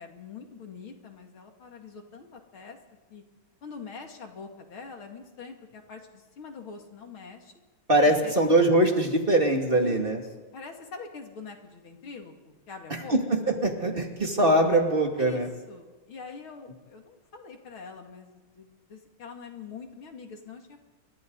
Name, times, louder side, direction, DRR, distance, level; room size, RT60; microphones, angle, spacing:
voice 1, 0.0-2.8 3.1-3.2 3.6-7.5 7.9-8.3 9.7-10.1 10.5-13.2 15.2-15.4 15.7-20.8, left 5 dB, 75° left, 3 dB, 3.2 m, -44 dB
voice 2, 7.9-10.2 12.9-15.5, right 1 dB, 25° right, 2 dB, 2.5 m, -22 dB
29.5 x 24.5 x 4.0 m, 1.3 s
omnidirectional pair, 2.3 m